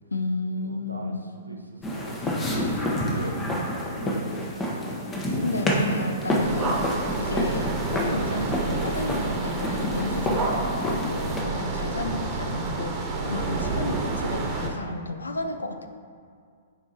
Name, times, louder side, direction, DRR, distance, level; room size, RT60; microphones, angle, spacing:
voice 1, 0.1-1.3 3.2-3.7 5.4-15.9, left 2 dB, 75° left, 7 dB, 0.5 m, -32 dB
voice 2, 0.6-1.1 1.4-3.4 4.0-5.0 15.5-15.6, right 2 dB, 90° right, 0 dB, 0.8 m, -40 dB
sound 1, 1.8-11.4, left 1 dB, 15° left, 1.0 m, -28 dB
sound 2, 6.4-14.7, right 3 dB, 20° right, 1.3 m, -29 dB
10.5 x 4.8 x 2.9 m, 2.1 s
figure-of-eight pair, 110°, 0 cm